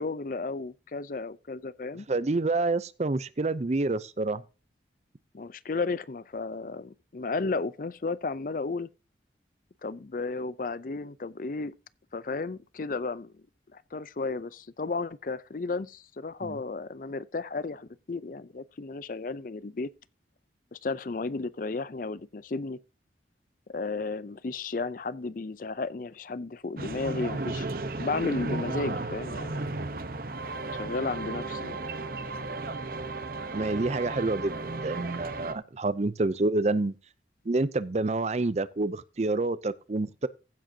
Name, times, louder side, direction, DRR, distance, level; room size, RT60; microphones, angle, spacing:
voice 1, 0.0-2.1 5.3-8.9 9.8-11.7 12.1-13.4 13.7-19.9 20.7-22.8 23.7-27.7 28.0-30.0 30.7-31.8, left 3 dB, 50° left, 0.5 m, -33 dB
voice 2, 2.1-4.4 16.4-16.6 33.5-36.9 37.5-40.3, right 2 dB, 40° right, 0.5 m, -28 dB
sound 1, 26.8-35.5, right 2 dB, 55° right, 0.9 m, -34 dB
15.5 x 7.7 x 2.8 m
head